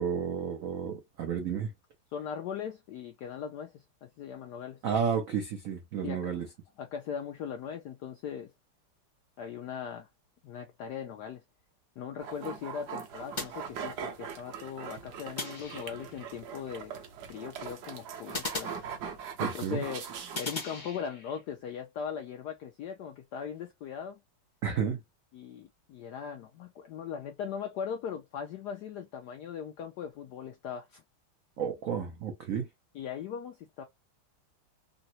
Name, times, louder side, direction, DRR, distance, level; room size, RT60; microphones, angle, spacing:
voice 1, 0.0-1.7 4.8-6.5 19.4-19.8 24.6-25.0 31.6-32.7, right 7 dB, 85° right, 0.7 m, -31 dB
voice 2, 2.1-4.8 6.0-6.2 6.8-8.5 9.4-10.1 10.4-11.4 12.0-16.9 17.3-18.7 19.4-20.1 20.4-24.2 25.3-31.0 32.9-33.8, left 7 dB, 80° left, 0.9 m, -39 dB
sound 1, 12.2-20.8, right 7 dB, 65° right, 1.1 m, -41 dB
sound 2, 13.4-14.3 15.4-16.2 18.3-19.5 20.3-21.4, left 3 dB, 35° left, 0.7 m, -39 dB
3.8 x 2.0 x 2.7 m
omnidirectional pair, 2.3 m